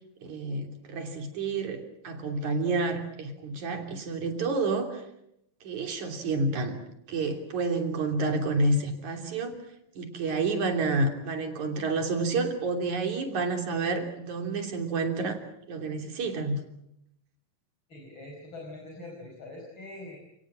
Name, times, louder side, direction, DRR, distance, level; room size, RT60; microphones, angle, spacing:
voice 1, 0.2-5.0 5.6-6.8 7.1-9.5 10.0-15.4 15.7-16.6, right 3 dB, 65° right, 5 dB, 4.5 m, -29 dB
voice 2, 17.9-20.2, left 2 dB, 35° left, 0 dB, 5.6 m, -43 dB
30.0 x 19.5 x 7.6 m, 0.80 s
omnidirectional pair, 3.6 m